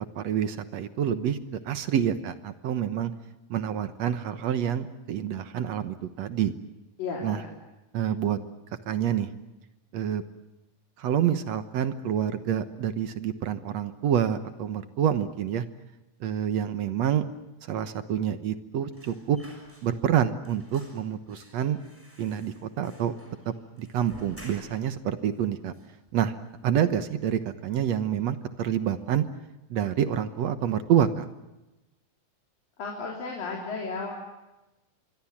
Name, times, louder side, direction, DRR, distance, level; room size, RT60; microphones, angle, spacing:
voice 1, 0.2-3.1 3.5-6.5 7.2-7.4 7.9-8.4 8.9-9.3 9.9-10.2 11.0-15.6 16.2-17.3 17.7-19.4 19.8-21.8 22.2-23.1 23.5-25.7 26.1-26.3 26.6-29.3 29.7-31.3, right 9 dB, 65° right, 11 dB, 1.9 m, -27 dB
voice 2, 7.0-7.5 32.8-34.1, left 4 dB, 75° left, -1 dB, 5.2 m, -34 dB
sound 1, 18.9-20.2 20.4-25.0 25.3-25.4 25.7-26.5 26.9-27.1 27.4-28.1 28.4-28.6, equal, 5° right, 6.3 m, -53 dB
26.5 x 23.0 x 7.3 m, 1.0 s
omnidirectional pair, 4.0 m